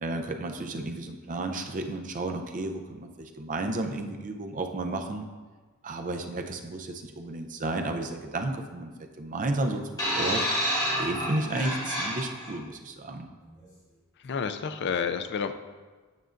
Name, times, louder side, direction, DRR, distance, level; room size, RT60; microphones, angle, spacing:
voice 1, 0.0-5.3 5.8-8.9 9.2-10.5 11.0-13.3, right 2 dB, 35° right, 4 dB, 0.5 m, -32 dB
sound 1, 10.0-12.5 13.5-13.6, equal, 15° left, 1.5 m, -29 dB
voice 2, 14.2-15.5, left 6 dB, 50° left, 9 dB, 0.4 m, -30 dB
9.3 x 6.2 x 2.5 m, 1.4 s
head